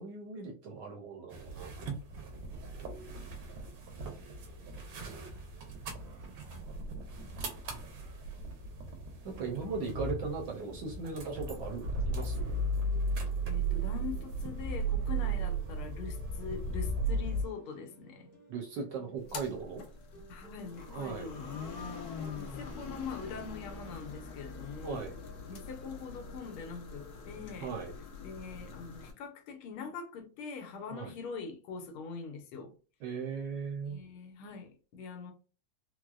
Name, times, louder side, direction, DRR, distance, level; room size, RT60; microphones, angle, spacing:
voice 1, 0.0-1.7 9.2-12.6 18.5-19.8 20.9-21.3 24.8-25.1 27.6-27.9 30.9-31.1 33.0-34.0, right 4 dB, 70° right, 1.1 m, -38 dB
sound 1, 1.3-17.4, right 2 dB, 85° right, 1.7 m, -36 dB
sound 2, 9.7-27.9, right 1 dB, 35° left, 0.9 m, -58 dB
voice 2, 13.5-18.3 20.3-21.6 22.3-25.1 25.5-27.7 28.2-32.7 33.9-35.3, left 5 dB, 85° left, 1.6 m, -43 dB
sound 3, 19.2-29.1, left 5 dB, 65° left, 1.0 m, -44 dB
4.4 x 2.0 x 2.3 m
omnidirectional pair, 2.4 m